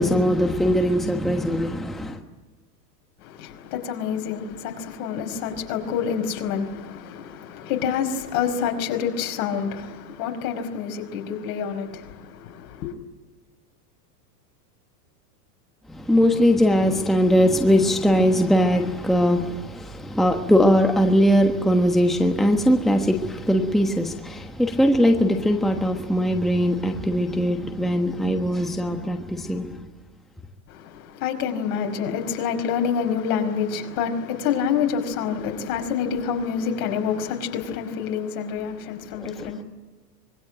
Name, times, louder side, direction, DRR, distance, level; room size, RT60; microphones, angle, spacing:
voice 1, 0.0-2.2 15.9-29.8, equal, ahead, 1.3 m, -20 dB
voice 2, 3.2-12.9 30.7-39.6, left 7 dB, 55° left, 5.1 m, -27 dB
25.5 x 23.0 x 9.0 m
supercardioid pair, 140°, 48 cm